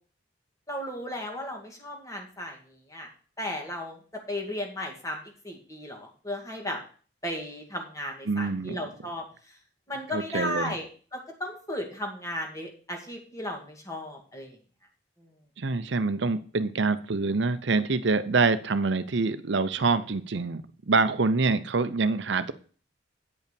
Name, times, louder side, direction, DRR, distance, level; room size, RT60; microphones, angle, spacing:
voice 1, 0.7-3.1 3.4-6.8 7.2-9.6 9.9-14.6 15.2-15.3, left 1 dB, 15° left, 1 dB, 2.2 m, -35 dB
voice 2, 8.3-8.8 10.1-10.8 15.6-20.6 20.9-22.5, right 3 dB, 70° right, 12 dB, 0.7 m, -25 dB
9.2 x 5.5 x 6.9 m, 0.40 s
head